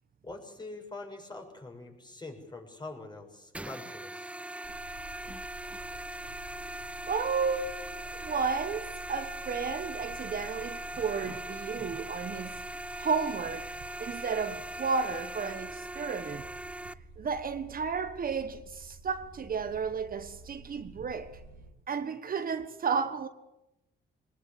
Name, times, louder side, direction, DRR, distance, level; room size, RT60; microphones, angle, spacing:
voice 1, 0.2-4.3, left 2 dB, 20° left, 6.9 m, -44 dB
sound 1, 3.5-16.9, right 1 dB, 5° right, 0.8 m, -40 dB
sound 2, 4.6-21.7, right 4 dB, 75° right, 3.3 m, -50 dB
voice 2, 7.1-12.6 13.0-13.7 14.0-16.4 17.2-21.4 21.9-23.3, right 5 dB, 45° right, 1.4 m, -33 dB
22.5 x 20.0 x 8.5 m
cardioid pair, 90°, 20 cm